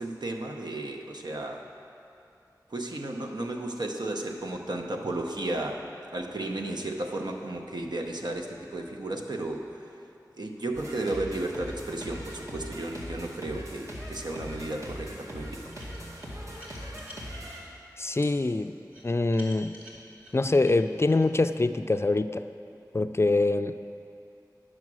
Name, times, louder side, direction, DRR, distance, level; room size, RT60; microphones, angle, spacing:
voice 1, 0.0-1.6 2.7-5.8 6.1-9.8 10.4-15.6, right 2 dB, 85° right, 2 dB, 0.8 m, -33 dB
sound 1, 10.7-17.6, equal, 45° right, 2.0 m, -40 dB
sound 2, 15.7-17.6 18.2-18.3 18.9-21.3, equal, 20° right, 2.4 m, -49 dB
voice 2, 18.0-18.8 19.0-19.7 20.3-22.5 22.9-23.7, left 2 dB, 40° left, 10 dB, 0.3 m, -24 dB
10.5 x 6.4 x 6.2 m, 2.7 s
wide cardioid pair, 50°, 7 cm